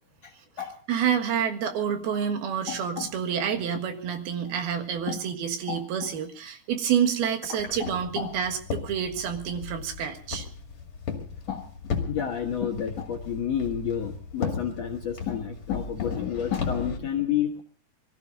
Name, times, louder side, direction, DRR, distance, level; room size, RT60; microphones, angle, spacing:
voice 1, 0.2-0.8 2.7-3.1 5.1-5.2 5.7-5.8 7.8-8.3 11.5-11.7 12.0-17.6, left 9 dB, 60° left, 1 dB, 1.9 m, -30 dB
voice 2, 0.9-10.5, right 8 dB, 70° right, 6 dB, 3.4 m, -28 dB
Walk footsteps, 7.6-17.0, left 6 dB, 40° left, 2.5 m, -36 dB
23.5 x 14.5 x 3.9 m, 0.43 s
omnidirectional pair, 4.7 m